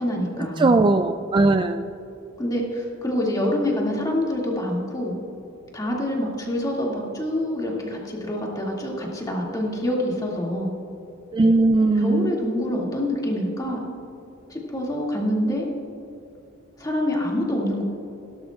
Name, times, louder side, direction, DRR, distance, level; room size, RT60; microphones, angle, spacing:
voice 1, 0.0-0.8 2.4-5.2 5.7-10.7 12.0-13.9 14.5-15.7 16.8-17.8, left 1 dB, 20° left, -2 dB, 2.1 m, -26 dB
voice 2, 0.6-1.8 11.3-12.3, right 2 dB, 25° right, 7 dB, 0.3 m, -19 dB
17.5 x 12.0 x 2.4 m, 2.8 s
head